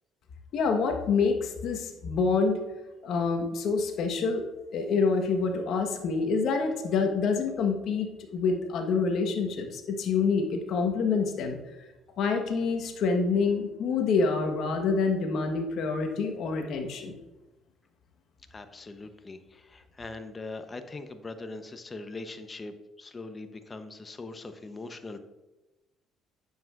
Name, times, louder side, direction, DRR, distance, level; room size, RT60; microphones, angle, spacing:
voice 1, 0.5-2.6 3.0-4.5 4.7-11.6 12.2-17.2, left 4 dB, 65° left, 4 dB, 1.3 m, -27 dB
voice 2, 18.5-25.2, left 3 dB, 30° left, 9 dB, 0.9 m, -41 dB
9.2 x 7.5 x 2.5 m, 1.1 s
supercardioid pair, 70°, 0 cm